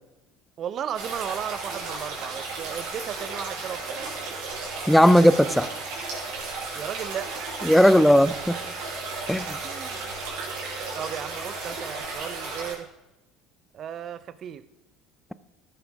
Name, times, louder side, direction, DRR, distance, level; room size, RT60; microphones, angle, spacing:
voice 1, 0.6-4.1 6.7-7.6 9.6-10.2 10.6-12.9 13.7-14.6, right 9 dB, 50° right, 16 dB, 0.6 m, -35 dB
sound 1, 0.9-12.7, right 3 dB, 65° right, 3.8 m, -34 dB
voice 2, 4.9-5.7 7.6-8.6 9.3-9.6, equal, 5° left, 15 dB, 0.6 m, -17 dB
14.0 x 7.5 x 3.6 m, 0.95 s
hypercardioid pair, 75°, 0 cm